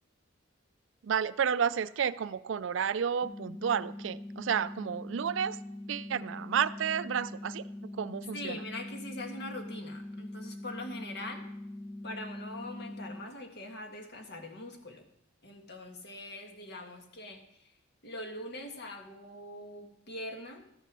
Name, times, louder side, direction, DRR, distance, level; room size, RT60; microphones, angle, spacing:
voice 1, 1.0-5.6 5.9-7.6 8.0-8.6, right 7 dB, 65° right, 0.4 m, -31 dB
sound 1, 3.2-13.2, left 1 dB, 35° left, 1.0 m, -43 dB
voice 2, 8.3-11.4 12.0-15.1 15.4-17.7 18.0-20.7, left 1 dB, 55° left, 1.7 m, -43 dB
13.0 x 6.7 x 6.1 m
head